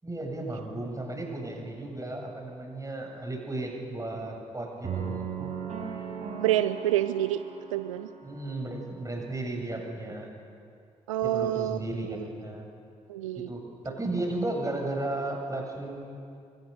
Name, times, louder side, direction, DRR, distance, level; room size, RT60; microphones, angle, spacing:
voice 1, 0.0-5.3 8.2-10.3 11.2-12.7 13.4-16.2, right 2 dB, 20° right, 2 dB, 7.5 m, -34 dB
sound 1, 4.8-9.0, right 7 dB, 40° right, 6.6 m, -38 dB
voice 2, 6.4-7.4 7.7-8.1 11.1-12.3 13.1-13.5, right 13 dB, 75° right, 13 dB, 0.5 m, -28 dB
30.0 x 24.0 x 6.9 m, 2.3 s
figure-of-eight pair, 40°, 17 cm